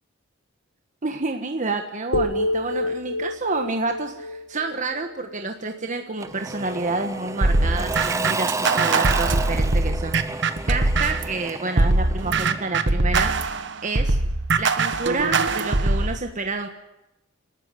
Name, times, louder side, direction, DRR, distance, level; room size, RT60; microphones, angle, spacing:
voice 1, 1.0-13.3 13.8-14.2 14.6-16.7, right 3 dB, 40° right, 5 dB, 1.4 m, -29 dB
sound 1, 2.1-6.2, left 1 dB, 80° left, 1.7 m, -29 dB
Engine / Mechanisms / Drill, 6.2-12.9, right 3 dB, 15° right, 0.7 m, -31 dB
sound 2, 7.4-11.3 11.8-16.1, right 3 dB, 65° right, 1.4 m, -22 dB
29.0 x 13.0 x 7.9 m, 0.94 s
head